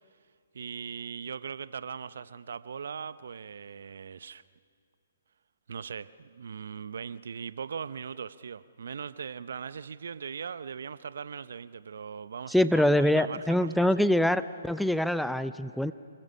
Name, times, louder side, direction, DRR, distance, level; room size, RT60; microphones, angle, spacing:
voice 1, 0.5-4.4 5.7-13.9, right 6 dB, 65° right, 16 dB, 0.7 m, -39 dB
voice 2, 12.5-15.9, left 1 dB, ahead, 13 dB, 0.5 m, -24 dB
27.0 x 21.5 x 5.5 m, 2.3 s
figure-of-eight pair, 130°, 0 cm